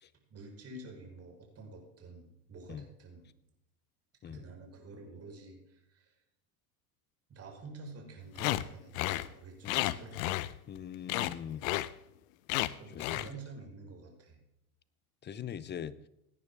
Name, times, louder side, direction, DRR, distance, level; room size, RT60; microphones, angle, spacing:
voice 1, 0.3-3.2 4.2-6.2 7.3-10.2 12.8-14.4, right 3 dB, 30° right, 1 dB, 4.9 m, -49 dB
sound 1, 8.4-8.6 8.9-9.3 9.7-10.8 11.1-11.4 11.6-11.9 12.5-12.7 13.0-13.3, left 17 dB, 60° left, 0.8 m, -32 dB
voice 2, 10.7-11.6 12.9-13.2 15.2-16.0, left 9 dB, 25° left, 18 dB, 0.8 m, -42 dB
17.5 x 9.7 x 3.5 m, 0.85 s
hypercardioid pair, 90°, 45 cm